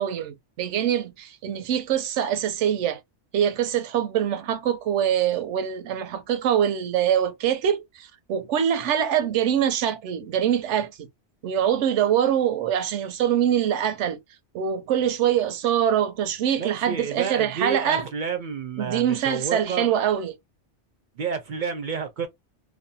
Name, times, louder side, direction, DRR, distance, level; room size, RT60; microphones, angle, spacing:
voice 1, 0.0-3.0 3.3-11.1 11.4-14.2 14.5-18.1 18.8-20.3, right 9 dB, 80° right, 0.9 m, -24 dB
voice 2, 16.6-19.9 21.2-22.3, right 6 dB, 55° right, 0.5 m, -29 dB
2.6 x 2.0 x 2.6 m
omnidirectional pair, 1.2 m